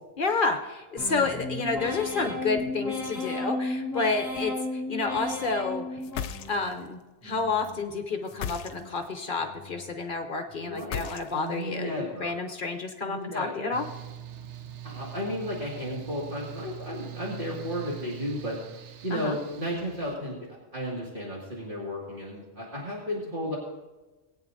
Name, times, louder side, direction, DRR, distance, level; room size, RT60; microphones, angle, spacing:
voice 1, 0.2-6.0 6.5-13.9 19.1-19.4, left 4 dB, 50° left, 5 dB, 0.9 m, -30 dB
sound 1, 1.0-6.8 7.2-7.9 8.3-9.0 9.4-10.0 10.5-11.1 11.6-12.1, left 2 dB, 15° left, 3.3 m, -35 dB
sound 2, 6.0-6.9 8.3-9.1 10.8-11.6, left 8 dB, 80° left, 0.9 m, -36 dB
voice 2, 10.6-11.0 11.3-12.3 13.0-13.8 14.8-18.6 19.0-23.6, equal, 50° right, -6 dB, 2.3 m, -34 dB
Mechanical fan, 13.7-20.2, right 11 dB, 85° right, 1.0 m, -42 dB
20.5 x 8.8 x 2.6 m, 1.1 s
omnidirectional pair, 1.2 m